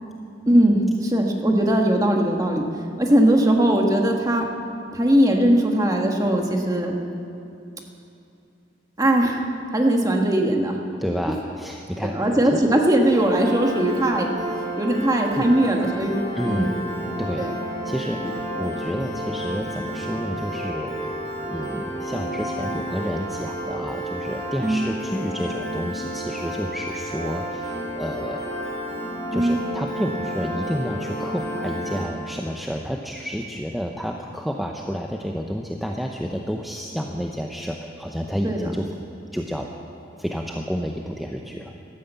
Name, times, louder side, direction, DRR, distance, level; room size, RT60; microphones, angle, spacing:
voice 1, 0.5-2.6 3.0-4.4 4.9-7.1 9.0-10.8 12.0-14.3 14.8-16.8 17.4-17.5 24.6-24.8 29.3-29.6 38.4-38.7, right 1 dB, 20° right, 2 dB, 1.4 m, -20 dB
voice 2, 11.0-12.6 15.3-15.6 16.4-16.7 17.2-17.5 17.8-21.2 21.5-28.4 29.3-38.9 39.3-39.7 40.2-41.7, equal, ahead, 1 dB, 0.6 m, -30 dB
Piano, 13.0-32.0, equal, 20° left, 4.9 m, -31 dB
12.5 x 12.5 x 8.1 m, 2.7 s
head